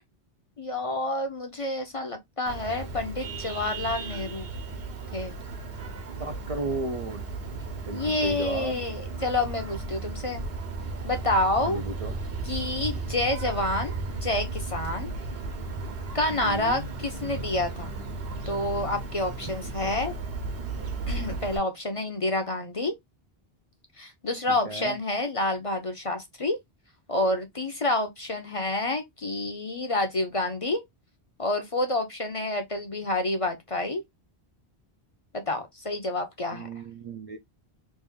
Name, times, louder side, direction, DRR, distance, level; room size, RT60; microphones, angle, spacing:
voice 1, 0.6-4.5 5.1-5.4 7.9-10.4 11.0-11.8 12.5-15.1 16.1-17.9 18.5-20.1 21.1-23.0 24.0-26.6 27.1-30.8 31.4-34.0 35.3-36.7, left 2 dB, 35° left, 0.7 m, -28 dB
Vehicle horn car horn honking, 2.5-21.6, right 3 dB, 70° right, 1.2 m, -35 dB
voice 2, 6.2-7.3 7.9-8.8 11.6-12.2 16.3-16.9 19.8-20.2 24.5-25.0 36.5-37.4, right 2 dB, 45° right, 0.5 m, -35 dB
3.2 x 2.5 x 3.5 m
omnidirectional pair, 1.1 m